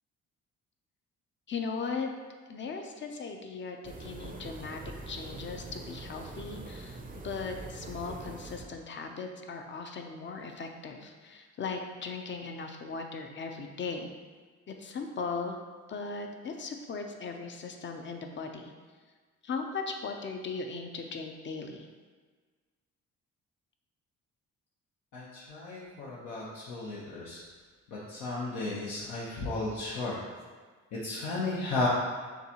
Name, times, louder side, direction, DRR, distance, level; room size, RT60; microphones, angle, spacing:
voice 1, 1.5-2.1 2.5-7.0 7.2-14.1 14.7-15.6 15.9-18.7 19.4-21.9, left 4 dB, 40° left, 4 dB, 0.5 m, -38 dB
sound 1, 3.8-8.8, right 2 dB, 30° right, 0.5 m, -43 dB
voice 2, 25.1-27.4 28.1-30.2 31.0-31.9, left 2 dB, 80° left, -7 dB, 0.9 m, -34 dB
6.5 x 2.3 x 2.9 m, 1.5 s
cardioid pair, 90°, 30 cm